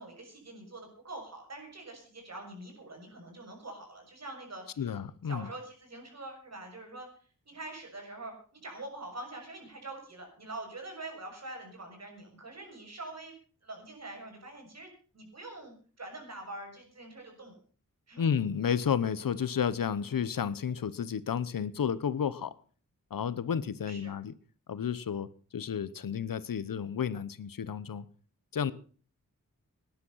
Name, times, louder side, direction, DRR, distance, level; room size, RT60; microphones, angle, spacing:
voice 1, 0.0-4.9 5.2-7.1 7.4-13.3 13.6-17.6 18.1-18.2 20.0-20.2 23.8-24.2 28.6-28.7, right 2 dB, 50° right, 3 dB, 6.7 m, -45 dB
voice 2, 4.8-5.5 18.2-22.5 23.1-24.3 24.7-25.3 25.5-28.0 28.5-28.7, left 7 dB, 85° left, 16 dB, 1.0 m, -31 dB
18.5 x 10.5 x 5.6 m, 0.41 s
wide cardioid pair, 130°, 33 cm